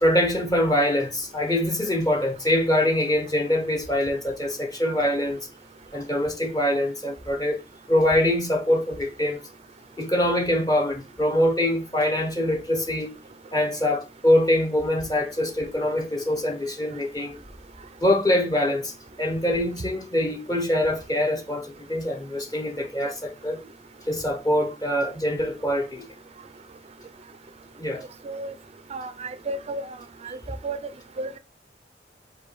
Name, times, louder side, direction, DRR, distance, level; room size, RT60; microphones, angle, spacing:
voice 1, 0.0-5.5 5.9-7.6 7.9-9.4 10.0-13.1 13.5-17.4 18.0-23.6 24.1-26.1 27.8-28.0, left 1 dB, 20° left, 0.6 m, -24 dB
voice 2, 28.9-30.0 30.2-30.4 30.6-30.8 31.2-31.4, right 2 dB, 35° right, 0.4 m, -32 dB
5.2 x 2.2 x 4.0 m
head